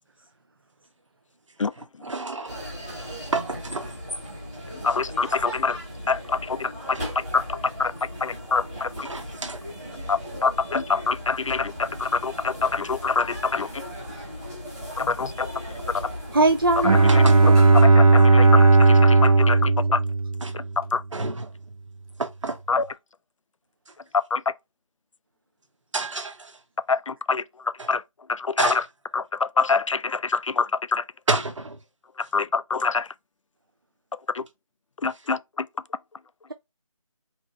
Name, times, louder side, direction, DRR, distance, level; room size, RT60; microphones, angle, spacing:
voice 1, 1.8-2.6 3.3-3.9 4.9-5.0 6.9-7.1 9.0-9.6 17.0-17.4 17.8-17.9 18.2-18.3 20.4-20.5 21.1-21.5 22.2-22.6 23.9-24.0 25.9-26.6 27.8-27.9 28.6-28.8 31.3-31.8 32.2-32.3 35.1-35.2, right 3 dB, 60° right, 1.0 m, -30 dB
sound 1, 2.5-17.8, equal, 10° right, 0.9 m, -37 dB
voice 2, 4.8-5.8 6.1-7.0 7.3-7.4 7.8-7.9 8.2-9.1 10.1-13.7 15.0-15.5 18.0-20.0 20.8-21.0 22.7-22.8 24.3-24.4 26.9-27.4 27.9-28.0 28.3-28.8 29.1-31.0 32.3-33.1 34.3-34.4 35.0-35.7, left 4 dB, 65° left, 0.4 m, -25 dB
voice 3, 16.3-17.5, right 2 dB, 40° right, 0.4 m, -22 dB
Bowed string instrument, 16.8-20.8, right 3 dB, 90° right, 0.6 m, -16 dB
4.1 x 2.9 x 3.0 m
figure-of-eight pair, 175°, 18 cm